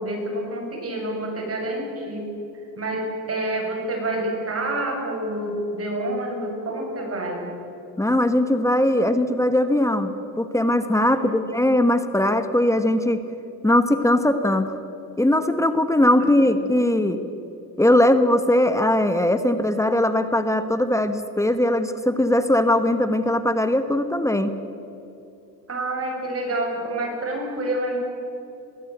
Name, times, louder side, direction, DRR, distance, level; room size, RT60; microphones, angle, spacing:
voice 1, 0.0-2.3 2.8-7.5 11.0-11.7 16.2-16.5 25.7-28.0, right 1 dB, 35° right, 2 dB, 6.4 m, -28 dB
voice 2, 8.0-10.1 10.4-13.2 13.6-14.8 15.2-17.2 17.8-24.5, left 1 dB, 5° left, 10 dB, 1.1 m, -20 dB
22.0 x 15.5 x 8.0 m, 2.8 s
supercardioid pair, 105°, 42 cm